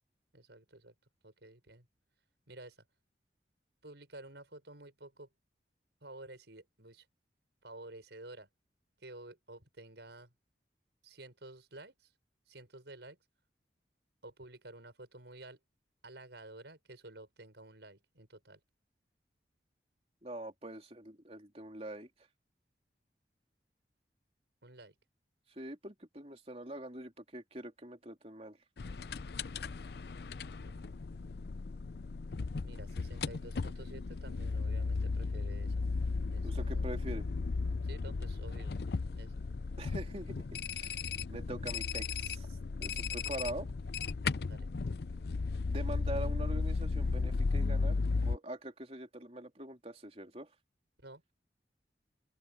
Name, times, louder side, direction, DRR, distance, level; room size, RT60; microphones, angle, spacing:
voice 1, 0.3-0.9 1.2-1.9 2.5-2.8 3.8-5.3 6.0-7.1 7.6-8.5 9.0-10.3 11.0-12.1 12.5-13.2 14.2-15.6 16.0-18.6 24.6-24.9 30.5-31.1 32.6-35.8 36.3-36.9 37.8-38.7 39.2-39.4 44.4-44.7 51.0-51.2, right 2 dB, 85° right, 6.0 m, -51 dB
voice 2, 20.2-22.1 25.5-28.6 36.4-37.3 39.8-41.0 41.3-43.7 45.7-50.5, right 1 dB, 35° right, 3.5 m, -44 dB
sound 1, 28.8-48.4, left 4 dB, 65° left, 0.5 m, -35 dB
open air
head